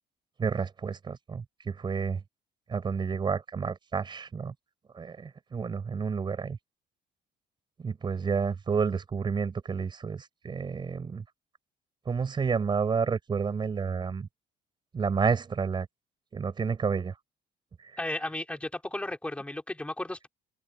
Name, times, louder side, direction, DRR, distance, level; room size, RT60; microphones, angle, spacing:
voice 1, 0.4-2.2 2.7-4.5 4.9-6.6 7.8-11.2 12.1-14.3 14.9-15.9 16.3-17.1, right 5 dB, 25° right, 5.6 m, -30 dB
voice 2, 18.0-20.3, left 1 dB, 5° left, 4.7 m, -34 dB
open air
cardioid pair, 160°, 18 cm